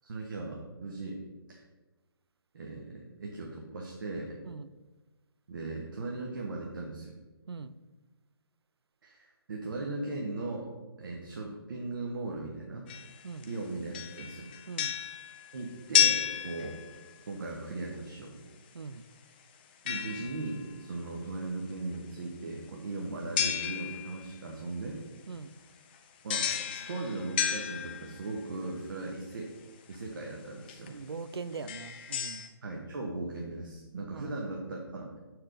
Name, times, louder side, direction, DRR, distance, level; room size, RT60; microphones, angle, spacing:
voice 1, 0.0-1.2 1.5-1.6 2.5-4.4 5.5-7.1 9.0-10.7 11.0-12.8 13.4-14.5 15.5-16.8 17.3-18.4 19.8-25.0 26.2-26.5 26.8-29.5 29.9-30.9 32.6-35.1, right 2 dB, 55° right, -1 dB, 1.0 m, -38 dB
sound 1, 12.9-13.5 13.9-17.2 19.9-20.7 23.4-24.3 26.3-28.4 29.9-30.0 30.7-30.9 31.5-32.5, left 9 dB, 25° left, 0.4 m, -32 dB
voice 2, 30.9-32.5 34.1-34.3, right 4 dB, 85° right, 14 dB, 0.4 m, -41 dB
6.3 x 4.6 x 3.8 m, 1.2 s
figure-of-eight pair, 150°, 13 cm